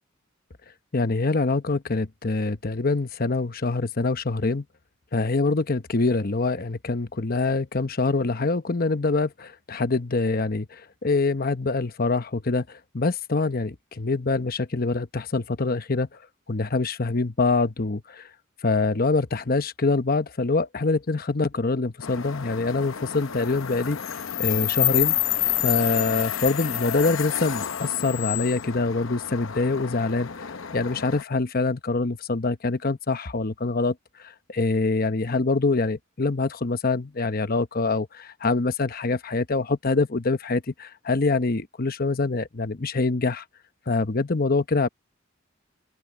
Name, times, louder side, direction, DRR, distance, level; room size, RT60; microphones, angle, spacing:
voice 1, 0.9-4.6 5.1-16.1 16.5-18.3 18.6-24.1 24.4-25.2 25.6-43.4 43.9-44.9, left 3 dB, 45° left, 0.9 m, -25 dB
sound 1, 22.0-31.2, left 12 dB, 75° left, 0.8 m, -29 dB
open air
head